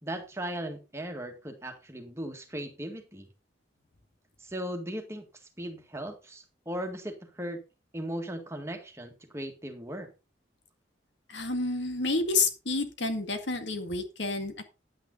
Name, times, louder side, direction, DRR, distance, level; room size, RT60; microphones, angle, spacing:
voice 1, 0.0-3.3 4.4-5.3 5.6-7.6 7.9-10.1, right 1 dB, 15° right, 4 dB, 1.9 m, -37 dB
voice 2, 11.3-14.6, left 3 dB, 80° left, 6 dB, 2.0 m, -29 dB
10.0 x 9.3 x 4.0 m, 0.29 s
head